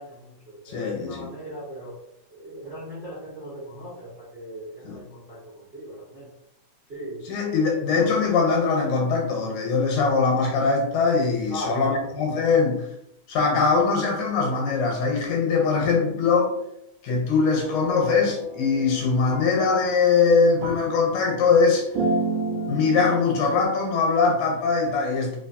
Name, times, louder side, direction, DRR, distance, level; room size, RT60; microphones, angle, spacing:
voice 1, 0.0-2.0 2.3-6.3 6.9-7.3 7.6-7.8 11.5-12.1, equal, 35° right, -7 dB, 0.8 m, -38 dB
voice 2, 0.7-1.3 4.8-5.0 7.3-12.8 13.3-16.5 17.0-21.9 22.7-25.4, left 4 dB, 75° left, 0 dB, 2.0 m, -22 dB
sound 1, 17.6-23.6, right 2 dB, 85° right, 2.3 m, -31 dB
5.0 x 3.0 x 2.6 m, 0.79 s
omnidirectional pair, 3.6 m